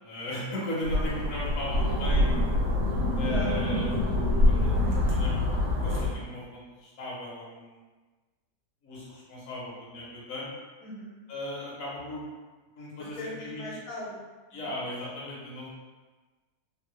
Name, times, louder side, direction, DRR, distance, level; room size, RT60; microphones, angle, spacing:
voice 1, 0.0-2.3 3.2-4.2 4.4-5.3 5.8-7.8 8.8-10.5 11.3-12.2 12.8-13.7 14.5-15.7, left 1 dB, 55° left, -6 dB, 1.0 m, -37 dB
sound 1, 0.8-6.1, left 1 dB, 75° right, 1.3 m, -25 dB
voice 2, 3.2-3.6 10.8-11.2 13.2-14.6, left 1 dB, 75° left, -6 dB, 1.3 m, -39 dB
3.5 x 2.1 x 3.0 m, 1.3 s
omnidirectional pair, 1.8 m